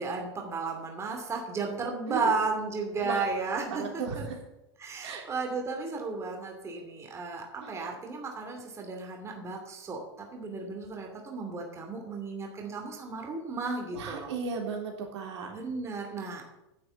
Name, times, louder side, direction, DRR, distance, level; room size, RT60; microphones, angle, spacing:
voice 1, 0.0-4.2 4.8-14.3 15.5-16.4, right 4 dB, 20° right, 2 dB, 2.6 m, -34 dB
voice 2, 3.7-4.4 5.0-5.2 7.6-7.7 13.9-15.5, right 5 dB, 80° right, 1 dB, 3.6 m, -35 dB
10.5 x 6.8 x 8.3 m, 0.91 s
supercardioid pair, 130°, 15 cm